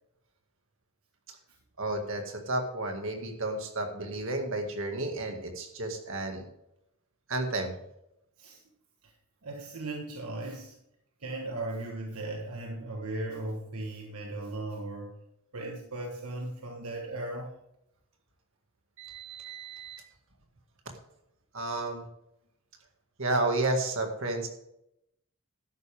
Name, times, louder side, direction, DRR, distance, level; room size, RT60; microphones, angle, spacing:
voice 1, 1.8-6.5 7.3-7.7 19.0-20.0 21.5-22.1 23.2-24.5, right 2 dB, 60° right, 4 dB, 2.1 m, -32 dB
voice 2, 9.4-10.8 11.2-15.2 15.5-17.5, right 2 dB, 75° right, 2 dB, 1.4 m, -37 dB
12.5 x 10.5 x 3.6 m, 0.80 s
head